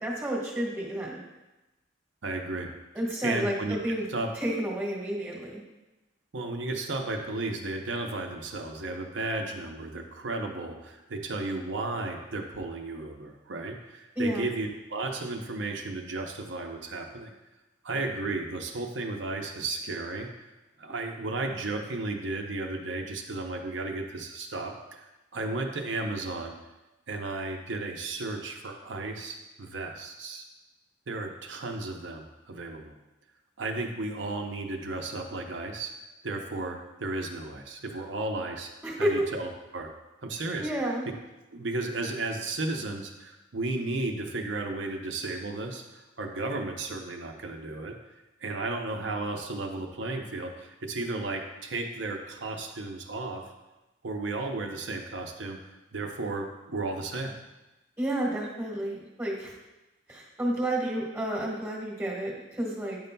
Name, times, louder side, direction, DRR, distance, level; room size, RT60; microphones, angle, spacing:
voice 1, 0.0-1.2 2.9-4.0 4.4-5.6 14.1-14.5 38.8-39.2 40.6-41.0 58.0-59.5 60.1-63.0, right 1 dB, 10° right, -3 dB, 1.3 m, -30 dB
voice 2, 2.2-2.7 3.2-3.8 4.1-4.3 6.3-17.3 17.8-20.5 20.8-26.5 27.1-30.4 31.1-32.9 33.6-35.9 36.2-38.7 39.0-39.9 40.2-40.7 41.5-48.0 48.4-53.4 54.0-55.6 55.9-57.3, right 2 dB, 75° right, 2 dB, 0.7 m, -34 dB
9.4 x 5.3 x 2.2 m, 1.0 s
head